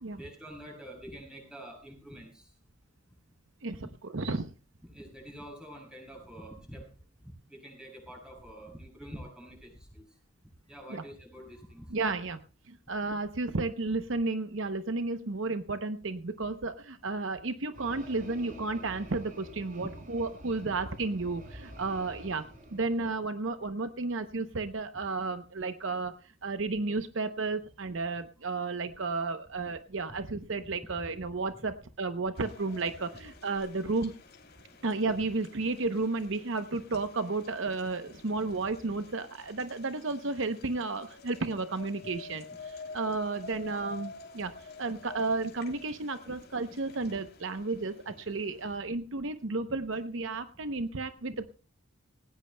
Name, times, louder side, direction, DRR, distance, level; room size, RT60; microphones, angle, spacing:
voice 1, 0.1-2.5 4.8-6.9 7.5-10.1 10.7-11.9 19.8-19.9 31.5-31.7 42.0-42.1 47.0-47.1, equal, 5° right, 0 dB, 7.3 m, -46 dB
voice 2, 3.6-4.5 10.9-11.0 11.9-12.4 12.7-22.4 22.7-26.1 26.4-34.1 34.8-51.6, right 3 dB, 60° right, 9 dB, 0.8 m, -33 dB
sound 1, 17.7-23.1, equal, 40° right, 6.1 m, -48 dB
sound 2, 32.3-48.8, left 3 dB, 45° left, 3.1 m, -50 dB
19.0 x 18.5 x 2.2 m, 0.36 s
head